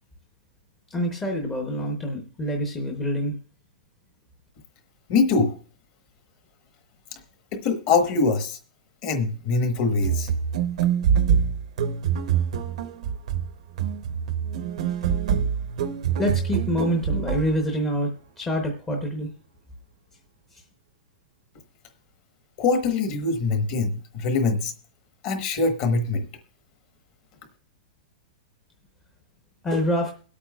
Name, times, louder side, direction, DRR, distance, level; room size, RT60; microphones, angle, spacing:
voice 1, 0.9-3.4 15.1-15.2 16.2-19.3 20.5-20.6 29.6-30.1, equal, 10° left, 1 dB, 0.8 m, -26 dB
voice 2, 5.1-5.5 7.5-8.6 9.0-10.3 22.6-24.7 25.2-26.3, left 4 dB, 30° left, 6 dB, 1.1 m, -23 dB
sound 1, 10.0-17.6, right 8 dB, 55° right, 0.7 m, -25 dB
22.5 x 8.5 x 2.3 m, 0.39 s
supercardioid pair, 180°, 4 cm